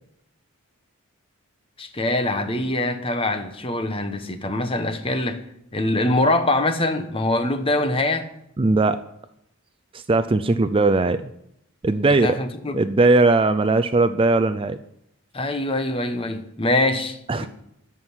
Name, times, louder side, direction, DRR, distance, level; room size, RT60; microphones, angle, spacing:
voice 1, 1.8-5.4 5.7-8.3 12.1-12.8 15.3-17.5, left 2 dB, 25° left, 1.1 m, -24 dB
voice 2, 8.6-9.0 9.9-11.2 11.8-12.4 12.7-14.8 17.3-17.5, right 2 dB, 25° right, 0.4 m, -19 dB
13.0 x 6.1 x 9.6 m
head